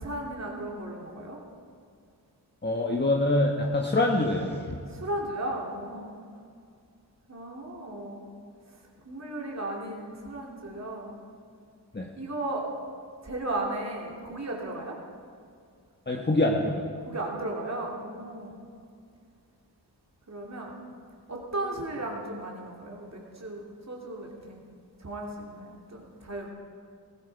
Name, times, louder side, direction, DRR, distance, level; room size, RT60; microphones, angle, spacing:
voice 1, 0.0-1.4 4.9-6.2 7.3-8.3 9.1-11.2 12.2-12.6 13.2-14.9 17.0-18.6 20.3-20.8 21.3-23.6 23.9-24.6 25.0-26.5, right 1 dB, 40° right, -2 dB, 2.8 m, -35 dB
voice 2, 2.6-4.8 11.9-12.1 16.1-16.9, left 2 dB, 25° left, 0 dB, 1.4 m, -25 dB
15.5 x 15.0 x 4.7 m, 2.3 s
cardioid pair, 40°, 42 cm